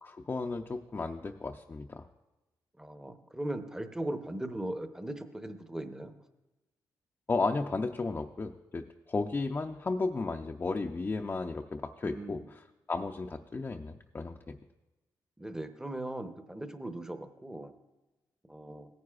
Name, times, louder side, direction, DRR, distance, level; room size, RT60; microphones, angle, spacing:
voice 1, 0.0-2.0 7.3-12.4 12.9-14.6, left 3 dB, 30° left, 2 dB, 0.5 m, -34 dB
voice 2, 2.8-6.1 12.0-12.5 15.4-17.7 18.5-18.9, right 1 dB, 10° right, 8 dB, 0.8 m, -39 dB
17.0 x 9.5 x 2.4 m, 1.0 s
cardioid pair, 85°, 7 cm